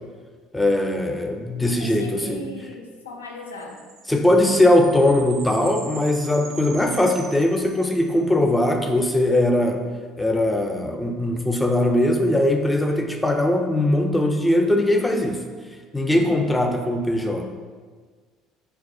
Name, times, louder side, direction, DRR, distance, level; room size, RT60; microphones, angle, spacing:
voice 1, 0.5-2.5 4.1-9.8 10.2-15.4 15.9-17.5, left 1 dB, 10° left, 4 dB, 0.4 m, -20 dB
voice 2, 1.8-3.8 16.1-16.6, left 2 dB, 90° left, 1 dB, 0.3 m, -38 dB
sound 1, 3.6-8.2, right 4 dB, 60° right, 0.4 m, -41 dB
3.9 x 2.3 x 2.6 m, 1.5 s
hypercardioid pair, 65°, 0 cm